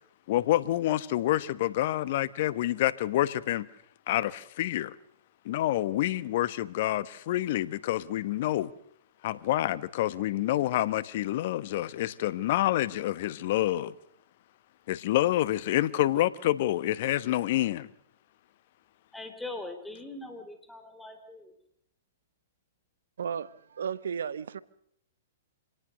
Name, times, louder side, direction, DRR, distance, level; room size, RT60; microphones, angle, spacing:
voice 1, 0.3-3.7 4.1-4.9 5.4-8.7 9.2-13.9 14.9-17.9, left 14 dB, 55° left, 1.1 m, -27 dB
voice 2, 19.1-21.6, left 2 dB, 5° left, 3.6 m, -41 dB
voice 3, 23.2-24.6, right 7 dB, 70° right, 1.0 m, -34 dB
26.0 x 18.5 x 6.4 m
hypercardioid pair, 120°, 0 cm